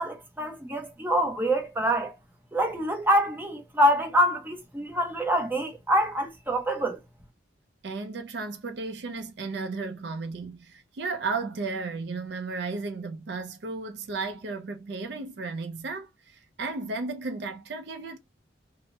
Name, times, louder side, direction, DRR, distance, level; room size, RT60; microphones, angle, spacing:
voice 1, 0.0-2.1 2.5-7.0, equal, 10° right, 0.7 m, -25 dB
voice 2, 7.8-18.2, right 3 dB, 60° right, 0.4 m, -34 dB
2.7 x 2.0 x 3.2 m
head